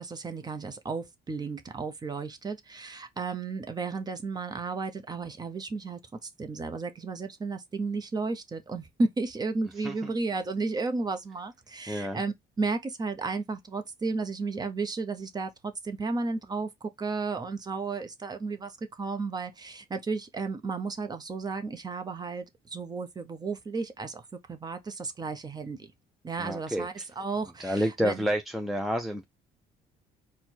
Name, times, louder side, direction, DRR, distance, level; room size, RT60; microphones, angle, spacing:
voice 1, 0.0-24.2 24.5-25.9 26.2-28.2, right 3 dB, 25° right, 0.7 m, -33 dB
voice 2, 9.8-10.1 11.9-12.2 26.4-27.0 27.6-29.2, equal, ahead, 0.4 m, -30 dB
4.4 x 2.2 x 4.3 m
cardioid pair, 110°, 17 cm